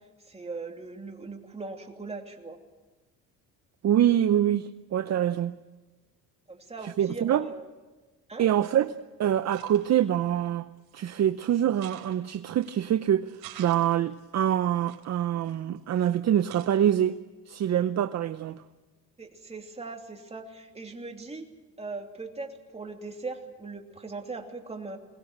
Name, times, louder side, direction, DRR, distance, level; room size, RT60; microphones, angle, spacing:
voice 1, 0.2-2.6 6.5-7.6 8.3-8.5 19.2-21.4 21.8-25.0, right 3 dB, 15° right, 3 dB, 2.9 m, -39 dB
voice 2, 3.8-5.6 6.8-7.5 8.4-13.3 13.6-17.2 17.5-18.6, right 10 dB, 45° right, 11 dB, 0.7 m, -25 dB
sound 1, 9.3-10.1 10.8-11.3 11.7-12.9 13.3-14.3 14.8-16.1 16.4-17.0, right 12 dB, 80° right, 3.9 m, -49 dB
22.0 x 19.5 x 7.9 m, 1.2 s
cardioid pair, 105°, 37 cm